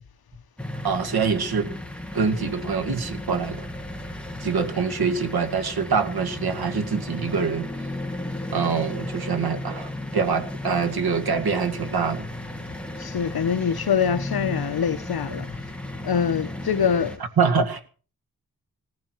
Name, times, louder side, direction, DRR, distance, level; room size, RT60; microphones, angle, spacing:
sound 1, 0.6-17.2, left 1 dB, 5° left, 2.1 m, -34 dB
voice 1, 0.8-1.7 2.1-3.6 4.4-7.7 8.5-12.3 17.4-17.9, right 5 dB, 75° right, 2.1 m, -25 dB
voice 2, 13.0-15.7 16.0-17.2, left 7 dB, 70° left, 1.1 m, -24 dB
19.0 x 14.5 x 4.7 m
wide cardioid pair, 135°, 38 cm